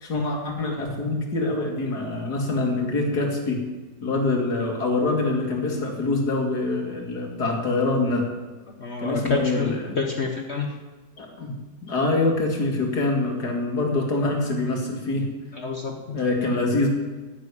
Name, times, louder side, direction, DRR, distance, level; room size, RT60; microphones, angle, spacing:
voice 1, 0.0-3.6 4.0-8.3 9.0-10.0 11.2-11.6 11.8-15.3 16.1-16.9, left 2 dB, 60° left, 1 dB, 2.8 m, -25 dB
voice 2, 8.8-10.7 15.6-16.2, left 4 dB, 45° left, 3 dB, 1.2 m, -28 dB
9.6 x 8.6 x 9.8 m, 1.2 s
omnidirectional pair, 1.9 m